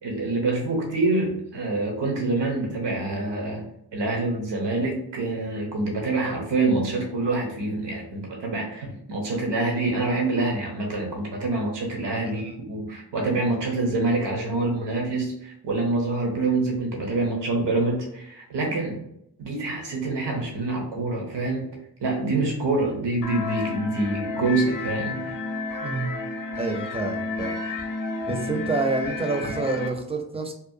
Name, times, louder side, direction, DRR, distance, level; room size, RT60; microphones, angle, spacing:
voice 1, 0.0-3.7 3.9-19.0 19.4-21.7 22.0-25.4, right 2 dB, 90° right, 0 dB, 0.7 m, -26 dB
voice 2, 12.2-12.6 25.8-26.1 26.6-27.5 28.3-30.5, right 3 dB, 15° right, 5 dB, 0.4 m, -28 dB
sound 1, 23.2-29.9, left 3 dB, 55° left, 0.5 m, -31 dB
2.8 x 2.1 x 2.6 m, 0.76 s
wide cardioid pair, 60°, 41 cm